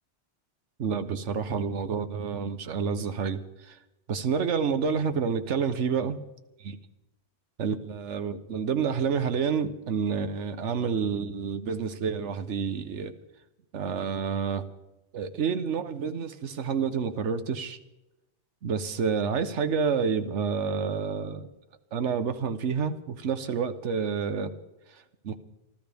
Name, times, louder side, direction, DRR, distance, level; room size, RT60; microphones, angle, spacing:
voice 1, 0.8-3.8 4.1-6.2 7.6-13.1 13.7-14.7 15.1-17.8 18.6-21.5 21.9-24.5 25.2-25.4, right 6 dB, 80° right, 1.2 m, -29 dB
26.5 x 13.0 x 3.5 m
omnidirectional pair, 1.2 m